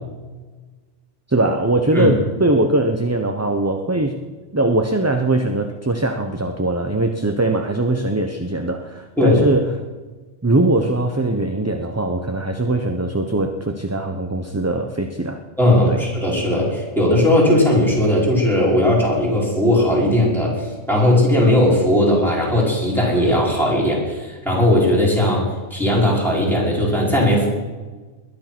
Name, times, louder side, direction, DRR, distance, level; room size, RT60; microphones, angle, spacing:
voice 1, 1.3-4.2 4.5-9.8 10.4-15.4 15.9-16.0, right 2 dB, 15° right, 5 dB, 0.8 m, -21 dB
voice 2, 15.6-27.5, left 1 dB, ahead, -5 dB, 5.5 m, -17 dB
21.0 x 11.0 x 6.0 m, 1.3 s
omnidirectional pair, 1.2 m